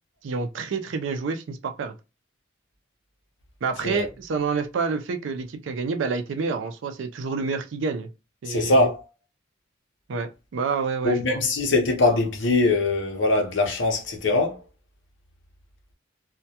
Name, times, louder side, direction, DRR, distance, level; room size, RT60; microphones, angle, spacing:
voice 1, 0.2-1.9 3.6-8.1 8.4-8.9 10.1-11.4, right 5 dB, 70° right, 0.4 m, -28 dB
voice 2, 8.5-9.0 11.0-14.6, left 2 dB, 70° left, 0.7 m, -22 dB
2.2 x 2.1 x 2.7 m
head